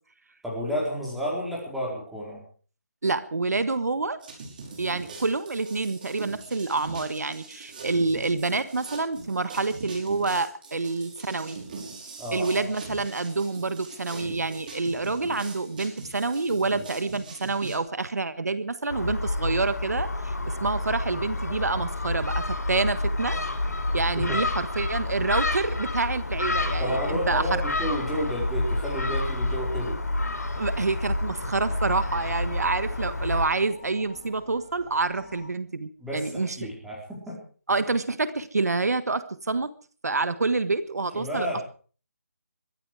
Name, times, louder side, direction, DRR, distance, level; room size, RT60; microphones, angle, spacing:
voice 1, 0.4-2.4 12.2-12.7 24.1-24.4 26.8-30.0 36.0-37.4 41.1-41.6, equal, ahead, -5 dB, 4.6 m, -31 dB
voice 2, 3.0-4.2 4.8-11.6 12.3-23.4 23.9-27.6 30.6-36.7 37.7-39.7 40.0-41.6, right 3 dB, 80° right, 13 dB, 1.5 m, -27 dB
sound 1, 4.2-17.8, right 3 dB, 30° right, 5.4 m, -42 dB
Gull seagull, 18.9-33.5, left 2 dB, 85° left, 5.8 m, -29 dB
sound 2, 30.4-35.5, left 3 dB, 25° left, 5.3 m, -49 dB
22.0 x 13.0 x 4.9 m, 0.42 s
figure-of-eight pair, 170°, 9 cm